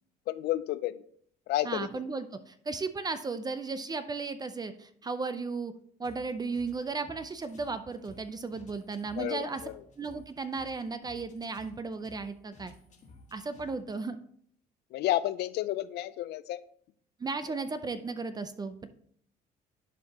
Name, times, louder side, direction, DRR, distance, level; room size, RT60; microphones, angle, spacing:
voice 1, 0.3-1.0 1.5-1.9 9.2-9.7 14.9-16.6, left 14 dB, 75° left, 15 dB, 0.5 m, -31 dB
voice 2, 1.6-5.7 6.0-9.6 10.0-12.7 13.3-14.2 17.2-18.9, right 4 dB, 25° right, 10 dB, 0.5 m, -35 dB
sound 1, 6.0-14.0, left 2 dB, 45° left, 1.5 m, -55 dB
10.5 x 4.6 x 2.9 m, 0.62 s
cardioid pair, 110°, 17 cm